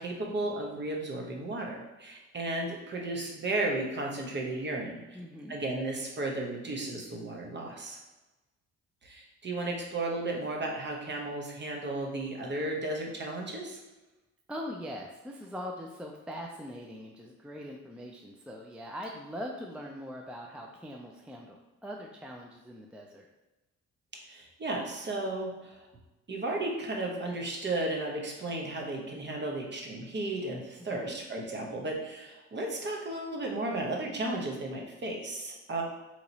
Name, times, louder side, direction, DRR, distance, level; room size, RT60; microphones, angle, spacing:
voice 1, 0.0-5.2 5.5-8.0 9.0-13.8 24.2-25.9 26.3-35.8, right 2 dB, 35° right, 0 dB, 0.9 m, -34 dB
voice 2, 5.1-5.5 14.5-23.3 30.9-31.2, equal, 5° right, 0 dB, 0.3 m, -42 dB
3.0 x 2.8 x 3.9 m, 1.1 s
cardioid pair, 90°, 30 cm